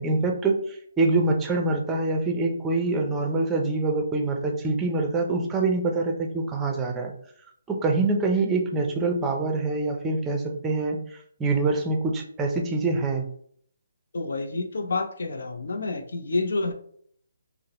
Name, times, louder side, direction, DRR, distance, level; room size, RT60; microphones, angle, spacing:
voice 1, 0.0-7.1 7.7-13.3, right 3 dB, 10° right, 2 dB, 0.5 m, -25 dB
voice 2, 14.1-16.7, left 3 dB, 70° left, 6 dB, 0.6 m, -28 dB
5.7 x 2.0 x 2.9 m, 0.62 s
hypercardioid pair, 170°, 0 cm